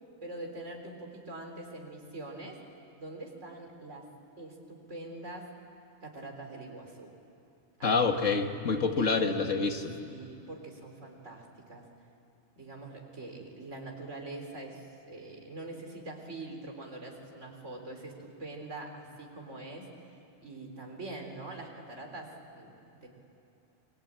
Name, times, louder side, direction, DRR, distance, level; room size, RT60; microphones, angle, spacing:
voice 1, 0.2-2.6 3.0-4.1 4.4-5.5 6.0-7.1 7.8-8.4 9.0-9.5 10.0-11.9 12.6-19.9 20.4-23.1, right 2 dB, 70° right, 2 dB, 4.2 m, -44 dB
voice 2, 7.8-10.0, left 4 dB, 80° left, 5 dB, 2.1 m, -27 dB
28.5 x 23.5 x 8.8 m, 2.8 s
omnidirectional pair, 1.3 m